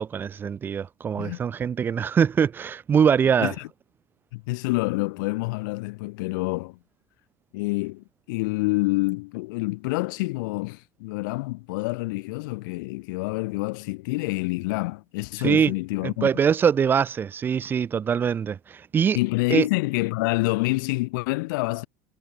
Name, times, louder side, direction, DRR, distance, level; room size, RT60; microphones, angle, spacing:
voice 1, 0.0-3.5 15.4-15.7 16.0-19.2 19.5-19.7, right 7 dB, 20° right, 0.6 m, -23 dB
voice 2, 4.3-6.8 7.5-16.3 19.1-21.9, left 24 dB, 85° left, 1.1 m, -27 dB
cardioid pair, 165°, 11 cm